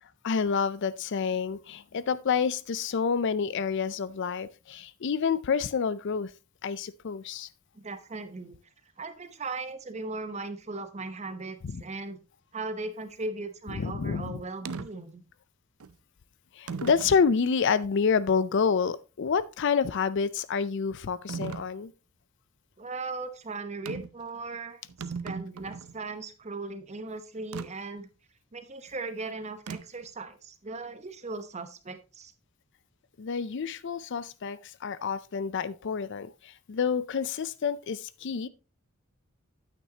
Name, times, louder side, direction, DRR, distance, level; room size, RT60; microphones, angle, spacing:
voice 1, 0.2-6.3 6.6-7.5 11.7-11.8 13.7-14.4 16.6-21.9 33.2-38.5, left 6 dB, 55° left, 0.5 m, -28 dB
voice 2, 7.7-8.6 9.0-12.2 12.5-15.2 22.8-24.8 25.2-28.1 28.5-32.3, right 3 dB, 30° right, 0.9 m, -38 dB
sound 1, 14.6-14.9 15.8-15.9 16.7-17.2 17.8-17.9 21.3-21.7 23.8-24.2 24.5-24.6 24.8-25.9 27.5-27.7 29.7-30.1, right 5 dB, 85° right, 0.6 m, -37 dB
9.3 x 8.7 x 2.8 m
head